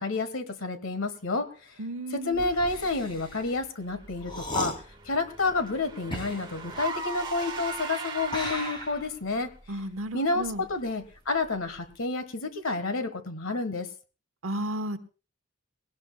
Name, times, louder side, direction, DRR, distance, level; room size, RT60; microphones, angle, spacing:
voice 1, 0.0-1.5 2.1-9.5 10.1-13.9, left 3 dB, 75° left, 10 dB, 1.4 m, -30 dB
voice 2, 1.8-2.4 9.7-10.6 14.4-15.0, right 1 dB, 80° right, 10 dB, 1.1 m, -33 dB
sound 1, 2.3-7.8 8.2-11.1 11.4-11.9, left 1 dB, 25° left, 2.6 m, -38 dB
Car / Engine, 4.1-9.1, right 4 dB, 20° right, 1.5 m, -38 dB
20.5 x 17.5 x 2.2 m, 0.34 s
head